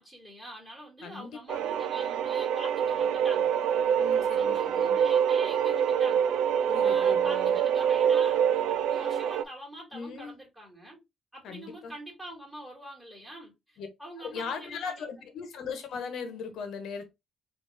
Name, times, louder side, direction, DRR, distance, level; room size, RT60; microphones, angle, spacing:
voice 1, 0.0-3.5 4.4-6.3 6.8-11.0 11.3-15.1, right 1 dB, ahead, 2.6 m, -45 dB
voice 2, 1.0-1.6 4.0-5.0 6.7-7.6 9.9-10.4 11.4-11.9 13.8-13.9 14.2-17.1, left 5 dB, 75° left, 1.1 m, -38 dB
sound 1, 1.5-9.4, right 8 dB, 85° right, 0.4 m, -25 dB
4.3 x 2.8 x 3.4 m
cardioid pair, 90°, 0 cm